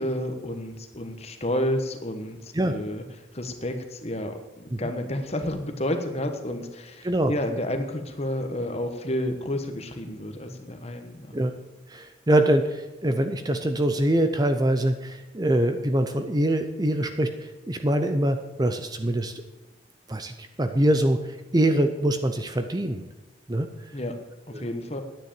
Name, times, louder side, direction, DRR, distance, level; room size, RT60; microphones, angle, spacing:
voice 1, 0.0-3.0 3.3-11.3 23.9-24.2 24.5-25.0, left 1 dB, 35° left, 6 dB, 1.3 m, -30 dB
voice 2, 11.9-19.4 20.1-23.0 23.5-23.7 24.5-24.7, right 1 dB, 20° right, 8 dB, 0.6 m, -24 dB
10.0 x 9.5 x 7.7 m, 1.0 s
head